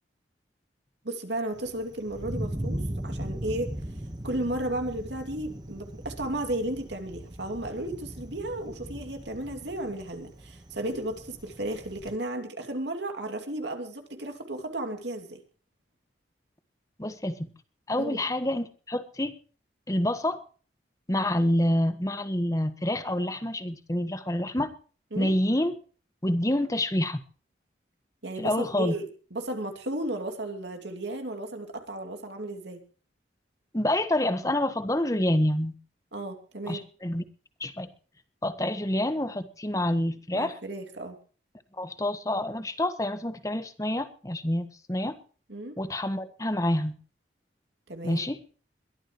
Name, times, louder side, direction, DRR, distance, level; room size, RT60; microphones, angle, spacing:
voice 1, 1.0-3.7 4.2-15.4 18.0-18.2 25.1-25.4 28.2-29.1 29.3-32.8 36.1-36.8 40.3-41.2 45.5-45.8 47.9-48.2, right 1 dB, 70° right, 5 dB, 2.7 m, -34 dB
Thunder, 1.5-12.2, right 1 dB, 25° right, 1.3 m, -38 dB
voice 2, 17.0-17.5 17.9-19.3 19.9-20.4 21.1-24.7 25.2-25.8 26.2-27.2 28.4-28.9 33.7-35.7 36.7-37.2 37.6-37.9 38.4-40.5 41.8-45.2 45.8-47.0 48.0-48.4, left 1 dB, 20° left, 10 dB, 1.3 m, -27 dB
22.5 x 13.0 x 3.2 m, 0.40 s
head